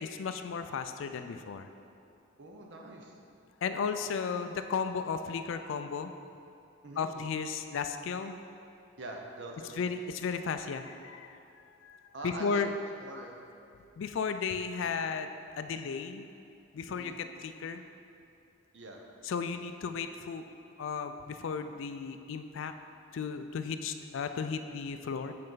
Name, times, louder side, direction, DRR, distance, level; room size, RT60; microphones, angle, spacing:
voice 1, 0.0-1.7 3.6-6.1 7.0-8.3 9.8-11.4 11.7-12.7 14.0-16.3 16.7-17.8 19.2-20.4 20.8-22.7 23.1-25.3, left 5 dB, 70° left, 8 dB, 0.3 m, -35 dB
voice 2, 2.4-3.2 6.8-7.1 9.0-9.8 12.1-12.6 13.0-13.3 16.9-17.2 18.7-19.0, right 2 dB, 55° right, 1 dB, 0.7 m, -43 dB
7.5 x 4.3 x 3.9 m, 2.6 s
head